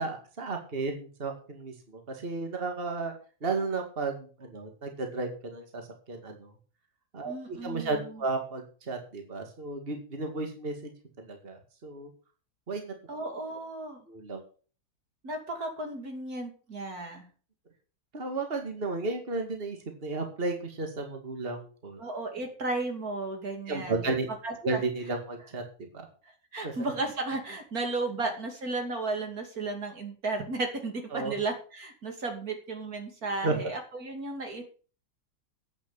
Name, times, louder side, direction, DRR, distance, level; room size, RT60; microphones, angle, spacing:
voice 1, 0.0-3.1 3.4-5.8 6.1-6.5 7.1-10.7 11.2-12.1 12.7-12.9 14.1-14.4 18.1-19.8 20.0-22.0 23.7-24.3 24.6-25.6 26.6-26.7 31.1-31.3 33.4-33.6, right 3 dB, 35° right, 4 dB, 2.3 m, -33 dB
voice 2, 7.2-8.2 13.1-14.0 15.2-17.2 22.0-24.0 24.4-24.8 26.5-34.6, right 3 dB, 65° right, 4 dB, 3.1 m, -34 dB
10.5 x 8.6 x 7.1 m, 0.39 s
omnidirectional pair, 1.7 m